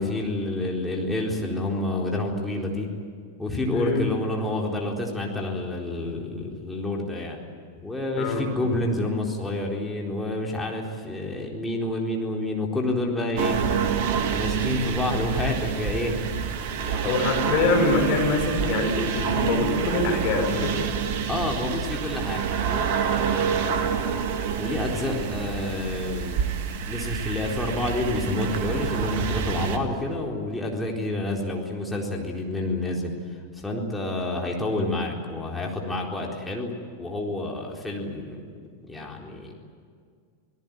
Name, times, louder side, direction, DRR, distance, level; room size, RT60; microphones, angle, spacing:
voice 1, 0.0-2.9 3.4-7.4 7.8-13.6 14.3-16.1 16.8-17.2 21.3-24.1 24.6-26.4 26.9-33.1 33.5-36.7 37.0-38.4 38.9-39.5, left 2 dB, 5° left, -1 dB, 4.1 m, -29 dB
voice 2, 3.7-4.1 8.2-8.5 17.0-20.9 23.4-23.5, left 4 dB, 40° left, 2 dB, 6.2 m, -24 dB
sound 1, 13.4-29.8, right 7 dB, 50° right, 2.0 m, -27 dB
27.0 x 18.5 x 9.1 m, 2.1 s
figure-of-eight pair, 90°, 0 cm